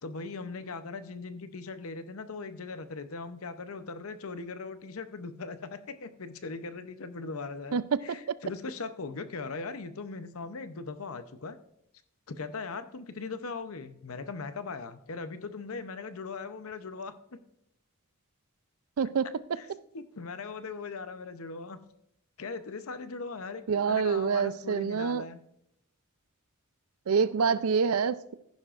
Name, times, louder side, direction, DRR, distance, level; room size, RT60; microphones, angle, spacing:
voice 1, 0.0-11.6 12.3-17.4 19.6-21.8 22.4-25.4, left 4 dB, 75° left, 0.7 m, -39 dB
voice 2, 23.7-25.2 27.1-28.3, right 6 dB, 80° right, 0.5 m, -26 dB
15.0 x 10.5 x 2.5 m
head